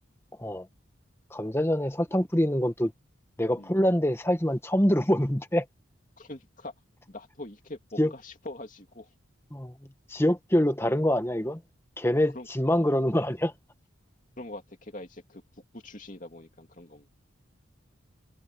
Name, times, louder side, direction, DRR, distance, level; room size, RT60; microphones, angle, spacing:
voice 1, 1.3-2.9 3.4-5.6 8.0-8.1 9.5-9.7 10.1-11.6 12.0-13.5, equal, 10° left, 1.5 m, -25 dB
voice 2, 6.2-6.7 7.1-9.1 10.8-11.0 12.3-12.5 12.8-12.9 14.4-15.4 15.7-17.1, left 1 dB, 40° left, 3.0 m, -43 dB
head